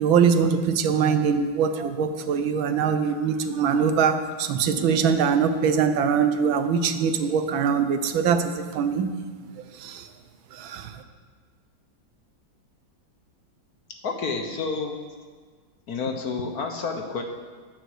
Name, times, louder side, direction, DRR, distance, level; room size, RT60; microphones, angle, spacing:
voice 1, 0.0-9.1 9.8-10.1 10.5-11.0, right 6 dB, 80° right, 9 dB, 1.6 m, -23 dB
voice 2, 14.0-15.0 15.9-17.2, left 4 dB, 55° left, 4 dB, 1.4 m, -29 dB
14.5 x 9.5 x 4.9 m, 1.5 s
omnidirectional pair, 2.2 m